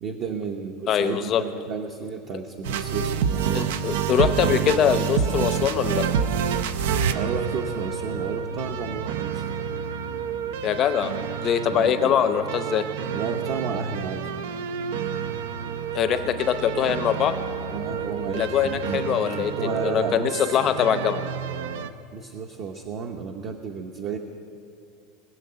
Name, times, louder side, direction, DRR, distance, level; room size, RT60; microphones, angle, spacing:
voice 1, 0.0-3.7 7.1-9.4 11.7-12.1 13.1-14.2 17.7-19.0 19.3-20.6 22.1-24.2, right 5 dB, 35° right, 3 dB, 0.7 m, -32 dB
voice 2, 0.9-1.4 3.5-6.1 10.6-12.8 15.9-17.3 18.3-21.2, left 9 dB, 25° left, 10 dB, 0.7 m, -23 dB
sound 1, 2.6-21.9, right 7 dB, 75° right, 0.7 m, -28 dB
20.5 x 7.0 x 9.5 m, 2.5 s
supercardioid pair, 180°, 0 cm